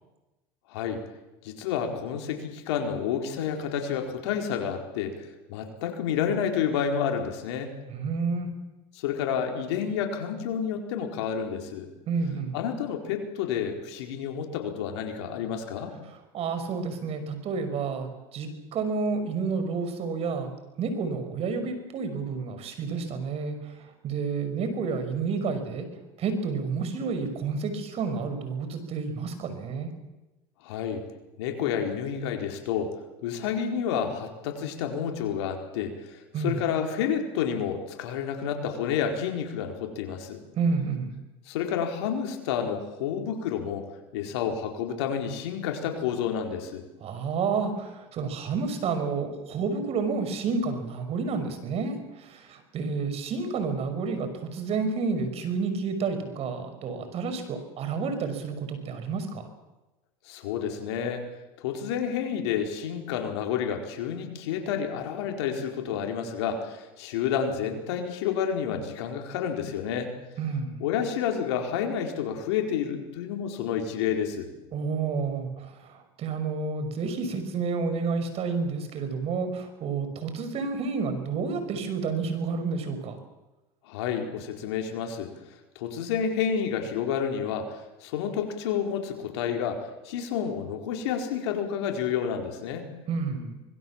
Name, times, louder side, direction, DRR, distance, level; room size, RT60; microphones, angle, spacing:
voice 1, 0.7-1.0 1.4-7.7 8.9-11.9 12.5-15.9 30.6-31.0 31.4-32.9 33.2-40.4 41.5-43.9 44.1-46.8 60.2-61.3 61.6-70.1 70.8-74.5 83.9-85.3 85.7-92.9, left 8 dB, 80° left, 4 dB, 4.5 m, -30 dB
voice 2, 7.9-8.5 12.1-12.6 16.1-20.5 20.8-25.9 26.2-29.9 36.3-36.6 40.6-41.1 47.0-59.5 70.4-70.8 74.7-83.2 93.1-93.5, right 4 dB, 45° right, 9 dB, 5.6 m, -30 dB
25.5 x 21.5 x 7.4 m, 1.0 s
supercardioid pair, 100°, 14 cm